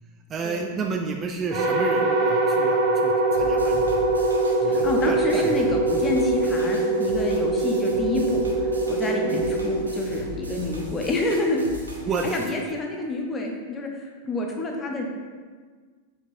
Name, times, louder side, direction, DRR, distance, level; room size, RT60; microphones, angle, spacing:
voice 1, 0.3-3.9 4.6-6.0 9.3-9.5 12.0-12.4, right 4 dB, 25° right, 3 dB, 0.5 m, -31 dB
sound 1, 1.5-10.8, right 2 dB, 45° right, 1.0 m, -23 dB
sound 2, 3.3-12.4, left 2 dB, 75° right, 1.0 m, -39 dB
voice 2, 4.6-8.4 8.9-11.6 12.2-15.1, left 2 dB, 20° left, 1 dB, 1.0 m, -28 dB
7.2 x 5.8 x 2.7 m, 1.5 s
figure-of-eight pair, 90°, 0 cm